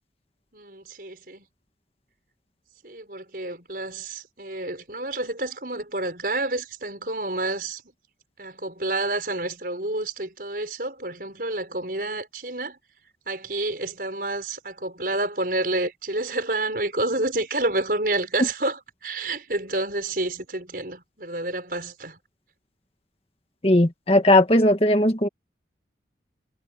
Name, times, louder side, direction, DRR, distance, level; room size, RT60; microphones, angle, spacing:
voice 1, 0.5-1.4 2.8-7.8 8.4-12.8 13.3-22.2, right 2 dB, 50° right, 6.1 m, -29 dB
voice 2, 23.6-25.3, left 1 dB, 35° left, 1.8 m, -18 dB
head